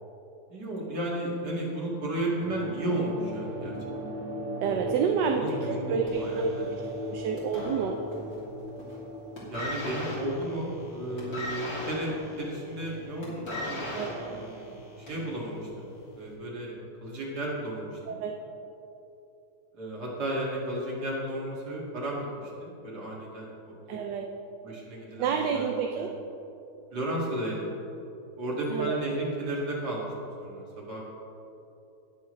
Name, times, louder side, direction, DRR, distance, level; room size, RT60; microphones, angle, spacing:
voice 1, 0.5-3.8 4.9-6.7 9.4-15.9 16.2-18.2 19.7-24.0 24.6-25.7 26.0-26.1 26.9-27.7 28.4-30.1 30.4-31.0, right 1 dB, 60° right, -4 dB, 2.7 m, -34 dB
sound 1, 2.2-17.1, equal, 35° right, 2.0 m, -40 dB
voice 2, 4.6-5.6 5.9-8.0 13.9-14.3 18.1-18.4 23.9-24.3 25.2-26.1 28.7-29.0, right 6 dB, 80° right, 3 dB, 1.3 m, -29 dB
sound 2, 6.1-8.4 8.7-9.1 9.3-15.3 16.1-16.2, left 1 dB, 55° left, 3.3 m, -38 dB
19.5 x 7.1 x 3.2 m, 2.9 s
omnidirectional pair, 1.9 m